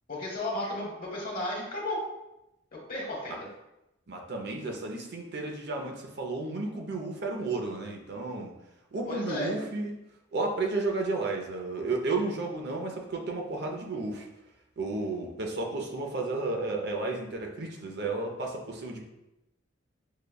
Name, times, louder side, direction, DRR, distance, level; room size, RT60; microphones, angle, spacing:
voice 1, 0.1-2.0 2.7-3.5 9.1-9.5, left 1 dB, 50° left, -2 dB, 1.1 m, -34 dB
voice 2, 4.1-8.5 8.9-9.9 10.3-14.3 14.8-19.0, right 3 dB, 60° right, 2 dB, 0.6 m, -32 dB
6.5 x 2.2 x 2.2 m, 0.90 s
head